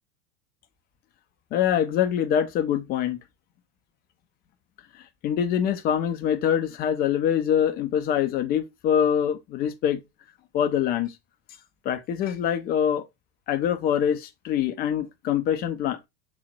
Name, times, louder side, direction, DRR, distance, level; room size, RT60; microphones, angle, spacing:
voice 1, 1.5-3.2 5.2-10.0 10.5-11.2 11.8-13.1 13.5-16.0, left 9 dB, 20° left, 0.4 m, -24 dB
3.9 x 2.1 x 2.5 m
hypercardioid pair, 90°, 48 cm